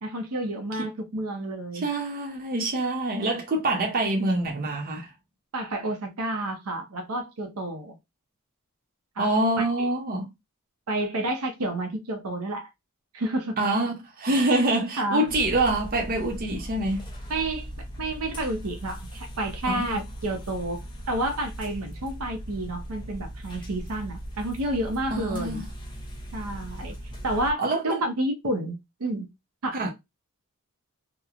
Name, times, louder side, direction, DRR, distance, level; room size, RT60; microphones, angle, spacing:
voice 1, 0.0-1.8 5.5-8.0 9.2-9.3 9.6-9.9 10.9-12.7 13.1-13.6 14.5-14.6 15.0-15.2 17.3-17.7 18.0-25.6 26.3-26.9 27.2-29.3 29.6-29.8, right 1 dB, 80° right, 0.7 m, -30 dB
voice 2, 1.7-5.1 9.2-10.3 13.6-17.1 19.7-20.0 25.1-25.7 27.6-28.0 29.7-29.9, right 2 dB, 40° right, 0.6 m, -26 dB
sound 1, 15.3-27.5, equal, 20° left, 0.6 m, -38 dB
2.9 x 2.1 x 2.4 m
head